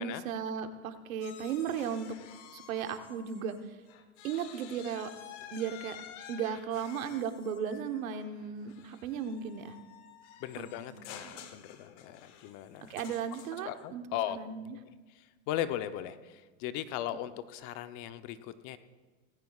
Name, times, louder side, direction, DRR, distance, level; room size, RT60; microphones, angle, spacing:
voice 1, 0.0-2.2 2.5-3.8 4.2-5.1 5.5-6.0 6.3-9.8 10.6-11.5 12.9-14.0 14.3-14.8, right 7 dB, 80° right, 8 dB, 1.3 m, -36 dB
sound 1, 1.2-3.6 3.9-13.8, left 9 dB, 65° left, 1.4 m, -51 dB
voice 2, 10.4-12.9 13.6-14.4 15.1-18.8, left 12 dB, 45° left, 11 dB, 0.9 m, -38 dB
18.5 x 16.0 x 2.4 m, 1.3 s
supercardioid pair, 125°, 40 cm